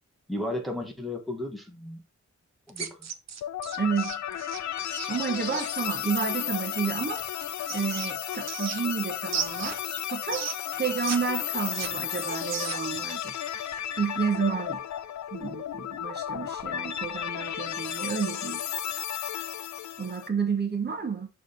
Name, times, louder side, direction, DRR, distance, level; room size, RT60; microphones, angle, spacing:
voice 1, 0.3-2.0 2.7-3.1, left 1 dB, ahead, 1.2 m, -34 dB
sound 1, 2.7-5.7 7.1-9.0 9.3-11.2 11.4-13.0, right 7 dB, 65° right, 0.7 m, -36 dB
sound 2, 3.4-20.3, left 10 dB, 75° left, 0.5 m, -33 dB
voice 2, 3.8-4.2 5.1-7.2 7.7-10.4 10.7-13.3 14.0-14.8 15.3-18.6 20.0-21.3, right 6 dB, 35° right, 1.1 m, -30 dB
6.5 x 3.3 x 5.1 m
wide cardioid pair, 170°, 29 cm